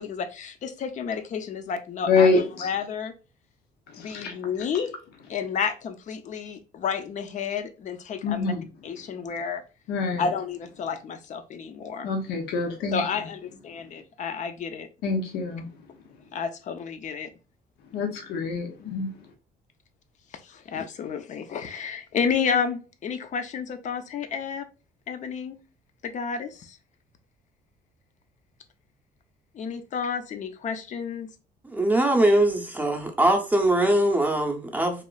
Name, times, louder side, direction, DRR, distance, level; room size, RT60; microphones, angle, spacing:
voice 1, 0.0-3.1 4.0-4.9 5.3-8.5 8.8-9.6 10.2-12.1 12.9-14.9 16.3-17.3 20.4-24.7 25.1-25.6 26.0-26.8 29.5-31.3, left 6 dB, 45° left, 9 dB, 0.5 m, -31 dB
voice 2, 2.1-2.7 3.9-4.3 4.7-4.8 8.2-8.6 9.9-10.3 12.0-13.0 15.0-15.7 17.9-19.1, left 4 dB, 80° left, 2 dB, 0.7 m, -25 dB
voice 3, 31.6-35.0, right 1 dB, 10° right, 2 dB, 0.6 m, -22 dB
3.1 x 2.4 x 2.2 m, 0.33 s
cardioid pair, 110°, 17 cm